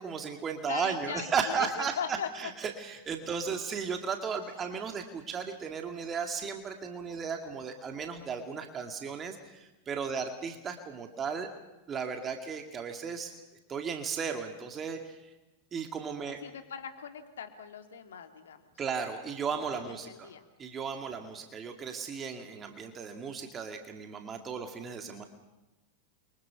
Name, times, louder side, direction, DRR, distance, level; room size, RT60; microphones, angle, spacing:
voice 1, 0.0-11.5 11.9-13.4 13.7-15.2 15.7-16.4 18.8-20.3 20.6-25.2, right 6 dB, 25° right, 5 dB, 2.4 m, -35 dB
voice 2, 0.6-2.3 10.1-10.2 16.3-18.7 19.5-20.4 21.1-21.2, left 7 dB, 65° left, 6 dB, 2.7 m, -40 dB
29.0 x 24.5 x 5.9 m, 1.0 s
figure-of-eight pair, 90°, 0 cm